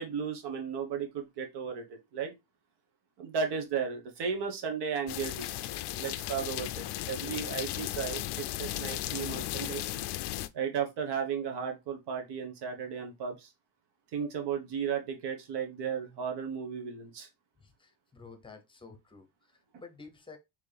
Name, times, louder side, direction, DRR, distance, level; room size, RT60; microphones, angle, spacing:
voice 1, 0.0-2.3 3.2-5.5 5.9-9.8 10.5-13.5 14.1-17.3, right 6 dB, 65° right, 1.4 m, -35 dB
sound 1, 5.1-10.5, left 15 dB, 65° left, 0.5 m, -36 dB
voice 2, 17.6-20.4, left 4 dB, 10° left, 0.8 m, -51 dB
4.4 x 3.1 x 3.3 m
cardioid pair, 145°, 43 cm